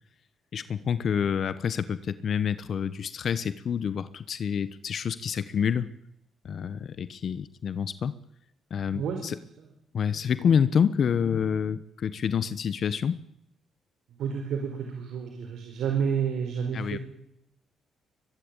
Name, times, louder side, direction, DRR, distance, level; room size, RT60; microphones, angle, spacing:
voice 1, 0.5-5.9 6.4-8.2 8.7-9.3 9.9-13.2 16.7-17.0, left 7 dB, 55° left, 15 dB, 1.1 m, -27 dB
voice 2, 8.9-9.2 9.6-9.7 14.2-17.0, right 7 dB, 75° right, 3 dB, 4.8 m, -30 dB
23.0 x 22.5 x 9.0 m, 0.79 s
cardioid pair, 90°, 0 cm